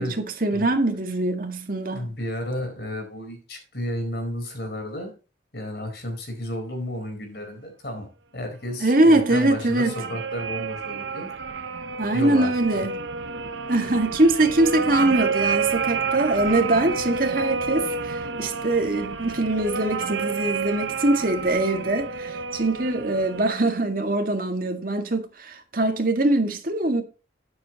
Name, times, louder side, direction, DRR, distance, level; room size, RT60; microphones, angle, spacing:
voice 1, 0.0-2.1 8.8-9.9 12.0-13.0 13.7-27.0, right 2 dB, 50° right, 2.0 m, -23 dB
voice 2, 1.9-5.1 5.5-8.1 8.3-11.3 12.1-12.8, left 1 dB, 60° left, 4.5 m, -32 dB
sound 1, 9.1-23.5, right 4 dB, 80° right, 0.9 m, -29 dB
12.0 x 9.9 x 3.0 m
head